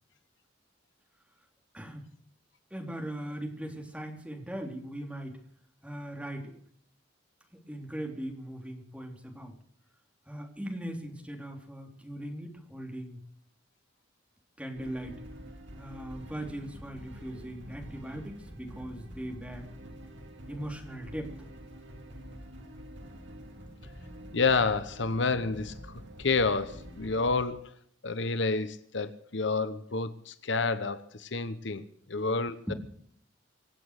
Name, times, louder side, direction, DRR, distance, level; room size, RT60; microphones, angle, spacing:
voice 1, 2.7-5.4 5.8-6.6 7.5-9.5 10.3-13.2 14.6-15.2 15.8-19.7 20.5-21.3 32.7-32.8, right 1 dB, 5° right, 3.4 m, -39 dB
sound 1, 14.7-27.4, equal, 65° right, 2.9 m, -47 dB
voice 2, 24.3-25.8 26.2-27.7 28.0-32.6, left 4 dB, 65° left, 1.0 m, -29 dB
25.5 x 8.5 x 6.6 m
head